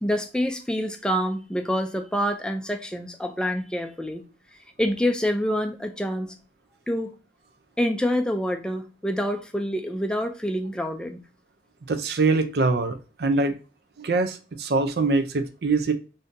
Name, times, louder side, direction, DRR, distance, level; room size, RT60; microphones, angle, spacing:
voice 1, 0.0-4.2 4.8-6.3 6.9-7.1 7.8-11.2, equal, 5° left, 0.4 m, -26 dB
voice 2, 11.9-13.5 14.0-15.9, right 3 dB, 60° right, 0.5 m, -23 dB
3.6 x 2.7 x 2.5 m
head